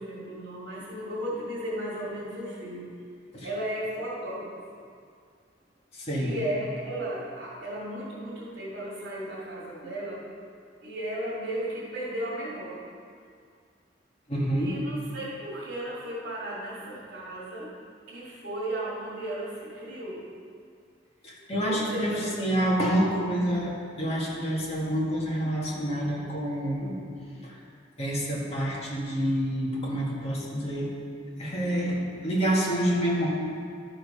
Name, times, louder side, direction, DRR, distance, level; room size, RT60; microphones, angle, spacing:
voice 1, 0.0-2.9 3.4-4.8 6.2-10.3 10.8-12.9 14.6-17.7 18.1-20.3 21.6-22.4, right 1 dB, 70° right, -8 dB, 2.3 m, -35 dB
voice 2, 6.0-6.4 14.3-14.7 21.2-27.0 27.4-27.6 28.0-33.3, equal, 35° left, -4 dB, 1.8 m, -28 dB
12.0 x 5.0 x 5.5 m, 2.2 s
head